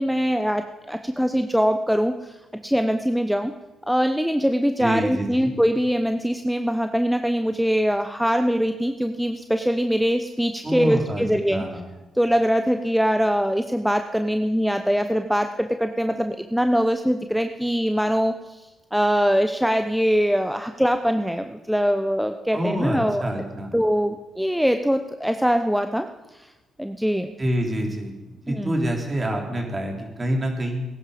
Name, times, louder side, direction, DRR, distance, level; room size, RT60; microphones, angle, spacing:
voice 1, 0.0-2.4 2.6-3.5 3.9-11.6 12.1-18.6 18.9-23.2 23.7-26.1 26.3-26.5 26.8-27.3 28.5-28.8, equal, ahead, 7 dB, 0.8 m, -22 dB
voice 2, 4.8-5.5 10.6-11.3 11.5-11.8 22.5-23.7 27.4-28.2 28.4-30.9, equal, 30° right, 1 dB, 3.7 m, -26 dB
19.5 x 11.0 x 5.1 m, 1.1 s
cardioid pair, 70°, 0 cm